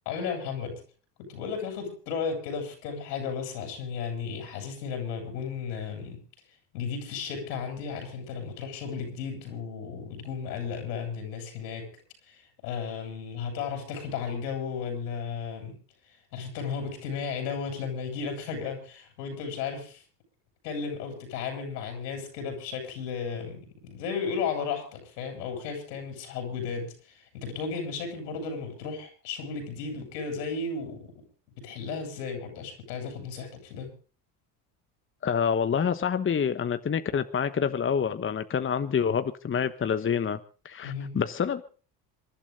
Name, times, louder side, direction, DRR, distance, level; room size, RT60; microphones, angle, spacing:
voice 1, 0.0-0.7 1.2-6.2 6.7-11.9 12.3-15.7 16.3-20.0 20.6-31.1 31.6-33.9 40.8-41.1, left 5 dB, 80° left, 8.0 m, -34 dB
voice 2, 35.2-40.4 40.6-41.6, left 7 dB, 25° left, 1.2 m, -27 dB
27.0 x 12.0 x 3.9 m
hypercardioid pair, 75°, 48 cm